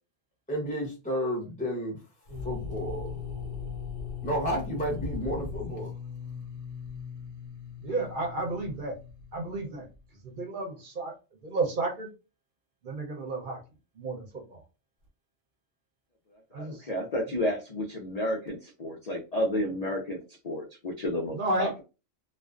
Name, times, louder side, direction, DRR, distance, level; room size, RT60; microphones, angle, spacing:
voice 1, 0.5-2.0 2.4-3.2 4.2-6.0, equal, 10° left, -2 dB, 0.5 m, -31 dB
sound 1, 2.3-10.0, left 5 dB, 80° right, 1.1 m, -39 dB
voice 2, 7.8-9.0 9.3-9.9 10.2-11.1 11.4-12.1 12.8-13.6 14.0-14.6 16.5-16.9 21.3-21.7, right 2 dB, 50° right, 1 dB, 0.7 m, -32 dB
voice 3, 16.6-21.8, equal, 80° left, 1 dB, 0.3 m, -31 dB
2.4 x 2.2 x 2.3 m, 0.30 s
omnidirectional pair, 1.3 m